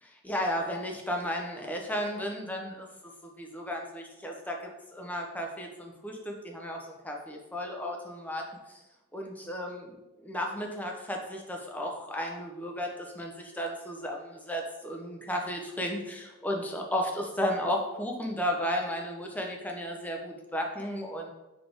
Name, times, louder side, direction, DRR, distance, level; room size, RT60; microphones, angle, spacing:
voice 1, 0.2-2.9 3.4-8.4 9.1-9.9 10.2-21.3, equal, 10° left, 1 dB, 0.6 m, -34 dB
4.0 x 3.8 x 3.4 m, 1.0 s
head